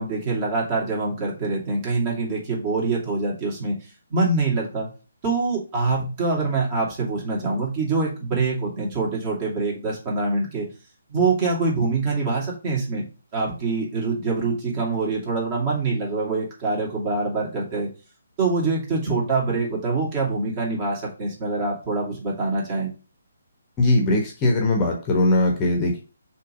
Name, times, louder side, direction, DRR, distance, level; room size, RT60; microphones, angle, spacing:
voice 1, 0.0-3.7 4.1-4.9 5.2-10.7 11.1-13.0 13.3-17.9 18.4-22.9, right 3 dB, 30° right, -3 dB, 2.6 m, -25 dB
voice 2, 23.8-26.0, left 2 dB, 20° left, 1 dB, 1.2 m, -20 dB
6.5 x 3.2 x 5.2 m, 0.34 s
figure-of-eight pair, 140°, 0 cm